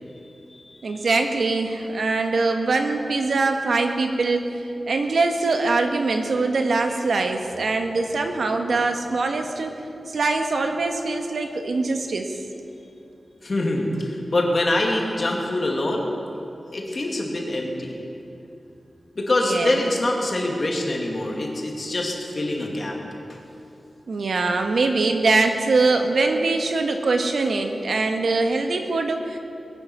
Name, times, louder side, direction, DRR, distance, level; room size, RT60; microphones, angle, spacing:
voice 1, 0.8-9.7 10.1-12.4 19.4-19.8 24.1-29.4, right 3 dB, 75° right, 5 dB, 1.4 m, -23 dB
voice 2, 13.4-16.1 16.7-18.0 19.2-22.9, left 1 dB, 40° left, 0 dB, 2.3 m, -24 dB
21.0 x 9.5 x 6.1 m, 2.7 s
wide cardioid pair, 130°, 0 cm